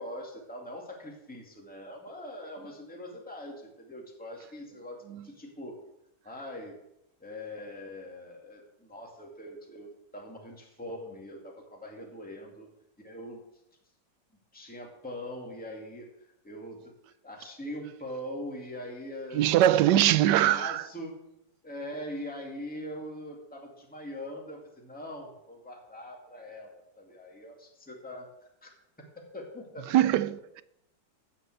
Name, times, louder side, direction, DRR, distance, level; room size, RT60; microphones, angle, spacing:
voice 1, 0.0-5.8 6.2-6.7 7.2-12.7 13.0-13.4 14.5-16.8 17.2-20.1 20.3-21.1 21.6-28.7 29.0-29.9, left 1 dB, 5° left, 2.4 m, -42 dB
voice 2, 19.3-20.8 29.9-30.6, right 12 dB, 80° right, 1.2 m, -22 dB
17.0 x 5.7 x 7.9 m
omnidirectional pair, 1.9 m